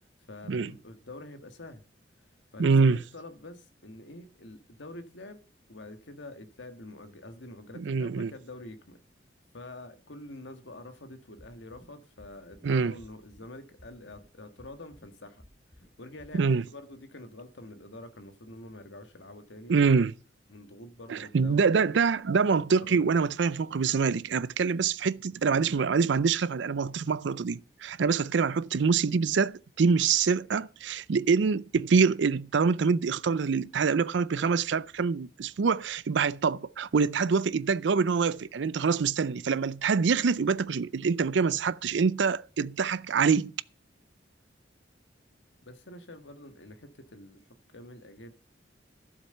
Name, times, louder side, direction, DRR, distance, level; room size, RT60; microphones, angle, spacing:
voice 1, 0.3-1.8 2.5-5.4 5.7-9.0 9.5-15.4 16.0-19.9 20.5-22.0 22.8-23.3 45.6-47.4 47.7-48.3, left 2 dB, 75° left, 1.6 m, -46 dB
voice 2, 2.6-3.0 7.8-8.3 12.6-12.9 16.3-16.6 19.7-20.1 21.1-43.5, right 5 dB, 70° right, 0.5 m, -25 dB
sound 1, 11.4-11.9 12.2-12.7 13.0-13.5 13.8-14.3 14.6-15.1 15.4-15.9 16.2-16.3, equal, 40° left, 5.3 m, -54 dB
12.5 x 7.4 x 6.7 m
head